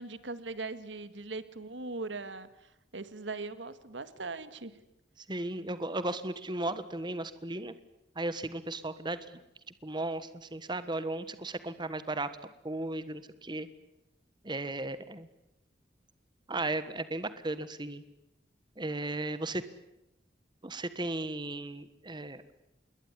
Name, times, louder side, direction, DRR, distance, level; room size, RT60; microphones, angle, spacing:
voice 1, 0.0-4.7, right 3 dB, 85° right, 13 dB, 1.8 m, -40 dB
voice 2, 5.3-7.7 8.1-9.2 9.8-12.3 12.6-13.7 14.4-15.3 16.5-18.0 18.8-19.6 20.6-22.5, right 2 dB, 25° right, 13 dB, 1.4 m, -35 dB
27.5 x 22.0 x 9.7 m, 0.89 s
head